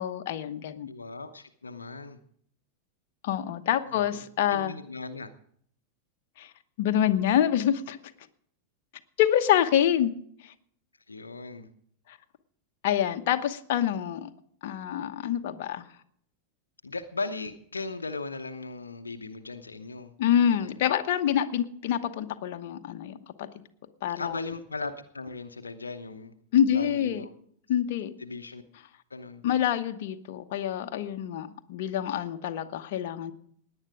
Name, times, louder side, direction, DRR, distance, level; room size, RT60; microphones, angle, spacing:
voice 1, 0.0-0.9 3.2-4.7 6.4-6.5 6.8-8.0 9.2-10.1 10.4-10.5 12.1-12.2 12.8-14.3 14.6-15.8 20.2-23.5 24.0-24.4 26.5-27.2 27.7-28.2 29.4-33.3, left 10 dB, 50° left, 7 dB, 1.0 m, -26 dB
voice 2, 0.9-2.2 3.9-5.3 11.1-11.7 16.8-20.8 24.1-26.3 26.7-27.3 28.2-28.6 29.1-29.4, left 3 dB, 75° left, 8 dB, 0.9 m, -38 dB
17.5 x 9.9 x 4.9 m, 0.64 s
figure-of-eight pair, 90°, 0 cm